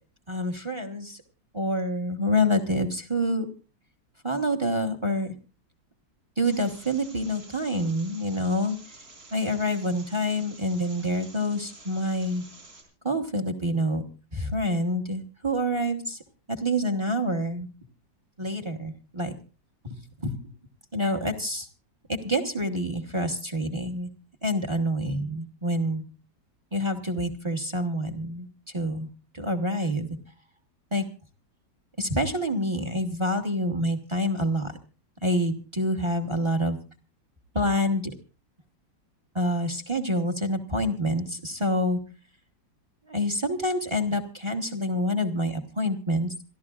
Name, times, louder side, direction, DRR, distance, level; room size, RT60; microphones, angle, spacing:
voice 1, 0.3-1.2 1.5-3.5 4.2-5.3 6.4-8.8 9.3-12.4 13.0-14.0 14.3-16.2 16.6-17.7 18.4-19.3 19.8-20.5 20.9-21.7 22.1-24.1 24.4-26.0 26.7-28.5 28.7-29.1 29.3-30.1 30.9-31.1 32.0-34.7 35.2-36.8 37.5-38.1 39.3-42.0 43.1-46.3, equal, 20° right, 6 dB, 1.0 m, -27 dB
sound 1, 6.4-12.8, right 2 dB, 50° right, 5.7 m, -49 dB
27.0 x 13.5 x 2.4 m, 0.33 s
omnidirectional pair, 2.1 m